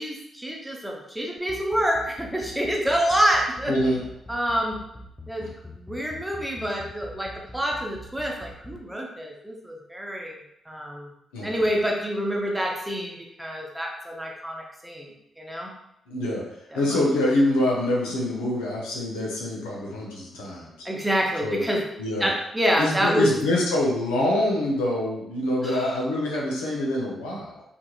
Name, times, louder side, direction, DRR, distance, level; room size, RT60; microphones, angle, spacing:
voice 1, 0.0-3.8 4.3-4.8 5.3-10.4 10.7-11.1 11.4-15.1 15.4-15.7 16.7-17.0 20.8-21.8 22.2-23.3 25.6-25.9, equal, 5° right, -1 dB, 0.7 m, -27 dB
sound 1, 1.4-8.8, left 1 dB, 30° left, 0.4 m, -43 dB
voice 2, 3.7-4.0 11.3-11.5 16.1-16.4 16.7-20.7 21.4-21.7 22.0-22.3 22.8-27.6, left 1 dB, 85° left, -3 dB, 0.6 m, -25 dB
2.8 x 2.5 x 2.3 m, 0.80 s
hypercardioid pair, 40°, 0 cm